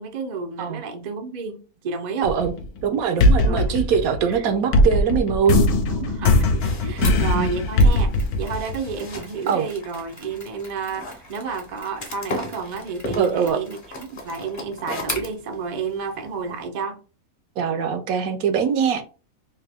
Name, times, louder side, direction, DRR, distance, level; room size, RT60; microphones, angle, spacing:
voice 1, 0.0-2.3 3.4-4.5 5.9-17.0, right 5 dB, 55° right, 0.4 m, -31 dB
sound 1, 2.2-2.8 3.2-9.1, left 1 dB, 75° left, 1.2 m, -19 dB
voice 2, 2.2-2.5 2.8-5.6 7.0-7.5 9.5-9.7 13.2-13.6 17.6-19.0, right 7 dB, 75° right, 1.0 m, -22 dB
sound 2, 6.6-16.6, left 1 dB, 40° left, 0.8 m, -38 dB
Mechanisms, 7.0-15.3, left 1 dB, 20° left, 0.4 m, -40 dB
3.5 x 2.6 x 3.4 m
omnidirectional pair, 1.6 m